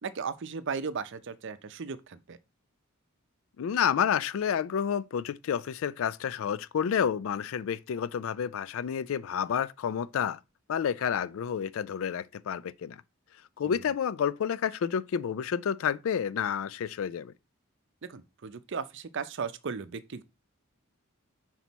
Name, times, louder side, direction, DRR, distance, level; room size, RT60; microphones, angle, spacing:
voice 1, 0.0-2.4 13.7-13.8 18.0-20.2, right 5 dB, 60° right, 0.6 m, -36 dB
voice 2, 3.6-10.4 10.7-13.0 13.6-17.3, left 8 dB, 70° left, 0.3 m, -30 dB
6.1 x 4.4 x 4.0 m
head